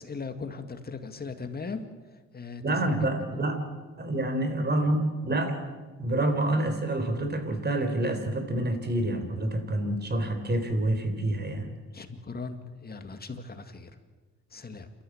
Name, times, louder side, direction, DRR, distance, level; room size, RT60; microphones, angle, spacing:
voice 1, 0.0-1.9 2.3-2.6 11.9-13.9 14.5-14.9, left 4 dB, 30° left, 8 dB, 2.1 m, -38 dB
voice 2, 2.6-3.6 4.0-5.5 6.0-11.7, right 1 dB, 35° right, 8 dB, 3.9 m, -27 dB
28.0 x 13.5 x 8.6 m, 1.4 s
cardioid pair, 90°, 30 cm